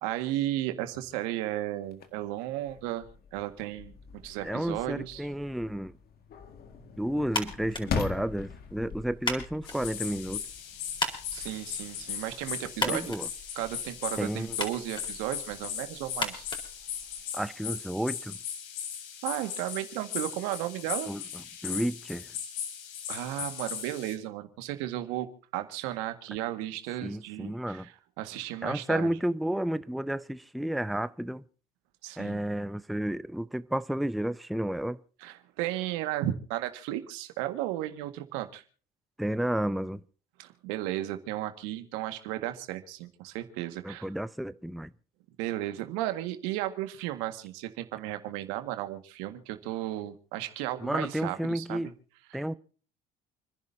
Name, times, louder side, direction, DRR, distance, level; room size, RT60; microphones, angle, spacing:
voice 1, 0.0-3.9 4.2-5.3 11.3-13.1 13.6-16.5 19.2-21.1 23.1-25.3 25.5-27.9 28.2-29.1 32.0-32.4 35.2-38.6 40.4-44.1 45.4-51.9 52.3-52.4, right 14 dB, 85° right, 1.8 m, -34 dB
sound 1, 1.8-12.8, left 6 dB, 50° left, 1.9 m, -42 dB
voice 2, 4.4-6.0 7.0-10.4 12.8-13.3 14.2-14.6 17.3-18.4 21.1-22.3 27.0-27.9 28.6-31.4 32.2-35.0 39.2-40.0 43.8-44.9 50.8-51.9 52.3-52.5, right 1 dB, ahead, 0.6 m, -31 dB
sound 2, 7.3-17.5, left 2 dB, 25° left, 4.1 m, -38 dB
sound 3, 9.7-24.2, left 8 dB, 75° left, 2.9 m, -38 dB
29.5 x 11.0 x 2.8 m
supercardioid pair, 80°, 20 cm